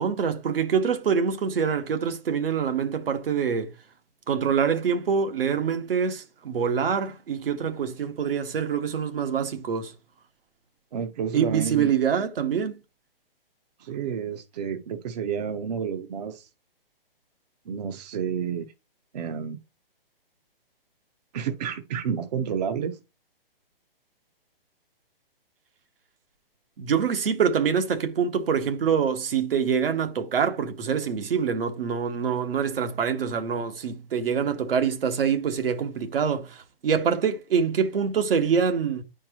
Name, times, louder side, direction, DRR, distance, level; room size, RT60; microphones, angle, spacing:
voice 1, 0.0-3.7 4.3-9.9 11.3-12.8 26.8-39.0, right 7 dB, 70° right, 1.3 m, -25 dB
voice 2, 10.9-11.9 13.8-16.5 17.7-18.7 19.1-19.6 21.3-23.0, right 7 dB, 45° right, 0.7 m, -30 dB
10.0 x 4.5 x 2.9 m
hypercardioid pair, 160°, 29 cm